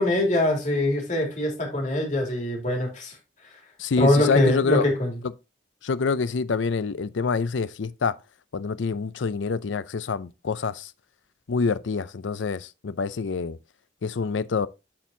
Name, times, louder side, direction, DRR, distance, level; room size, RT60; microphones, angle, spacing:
voice 1, 0.0-3.1 4.0-5.1, left 1 dB, 40° left, 2.6 m, -23 dB
voice 2, 3.8-4.8 5.8-8.1 8.5-10.9 11.5-13.6 14.0-14.7, left 4 dB, 85° left, 0.5 m, -26 dB
13.0 x 4.4 x 2.7 m
head